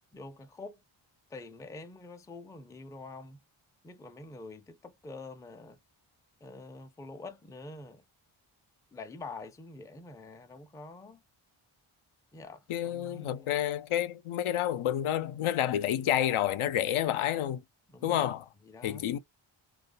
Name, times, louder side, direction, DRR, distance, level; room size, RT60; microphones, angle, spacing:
voice 1, 0.1-0.8 1.3-3.4 3.8-5.8 6.4-8.0 8.9-11.2 12.3-13.5 17.9-18.3 18.7-19.2, left 3 dB, 10° left, 0.3 m, -46 dB
voice 2, 12.7-17.6 18.0-18.4 18.8-19.2, left 11 dB, 85° left, 0.6 m, -29 dB
2.3 x 2.2 x 2.4 m
wide cardioid pair, 95°, 49 cm